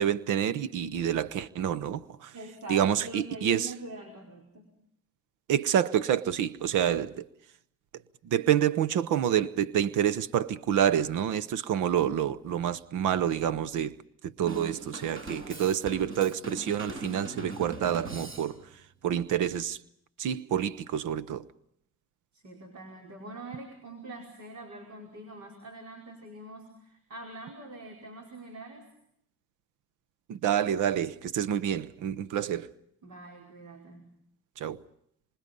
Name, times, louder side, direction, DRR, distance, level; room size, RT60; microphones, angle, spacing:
voice 1, 0.0-2.3 2.7-3.7 5.5-7.3 8.2-13.9 14.4-18.6 19.0-19.8 20.2-21.4 30.3-32.7 34.6-34.8, right 9 dB, 85° right, 0.9 m, -28 dB
voice 2, 2.3-4.7 22.3-28.9 33.0-34.1, right 2 dB, 65° right, 5.3 m, -44 dB
Drum kit / Drum, 14.5-18.8, right 2 dB, 45° right, 7.0 m, -41 dB
26.5 x 26.0 x 5.4 m
cardioid pair, 90°, 30 cm